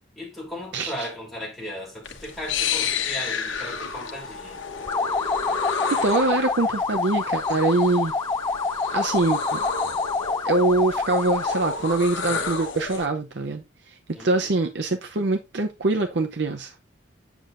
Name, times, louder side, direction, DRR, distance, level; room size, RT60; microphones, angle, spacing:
voice 1, 0.2-4.6 14.1-14.5, left 1 dB, ahead, 3.2 m, -36 dB
voice 2, 0.7-1.1 5.9-8.1 8.9-9.6 10.4-16.7, right 2 dB, 60° right, 0.7 m, -24 dB
sound 1, 2.0-13.1, left 5 dB, 75° left, 1.2 m, -31 dB
sound 2, 4.9-11.7, left 4 dB, 15° left, 0.3 m, -27 dB
7.5 x 7.1 x 2.6 m
head